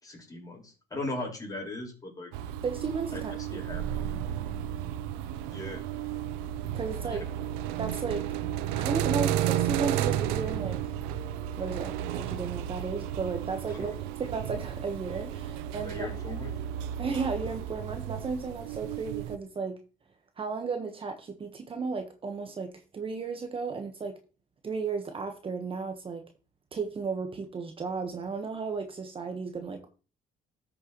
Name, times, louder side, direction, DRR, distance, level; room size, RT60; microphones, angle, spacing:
voice 1, 0.0-2.3 3.1-3.8 5.5-5.9 7.0-7.2 13.7-13.9 15.8-16.5, left 2 dB, 25° left, -1 dB, 5.0 m, -38 dB
sound 1, 2.3-19.4, right 11 dB, 90° right, 0.6 m, -33 dB
voice 2, 2.6-3.6 6.7-7.3 7.8-8.3 8.8-10.8 11.6-13.9 14.2-16.1 17.0-19.8 20.4-24.2 24.6-26.2 26.7-29.9, right 5 dB, 35° right, 6 dB, 1.3 m, -34 dB
13.0 x 6.5 x 3.1 m, 0.34 s
supercardioid pair, 80°, 16 cm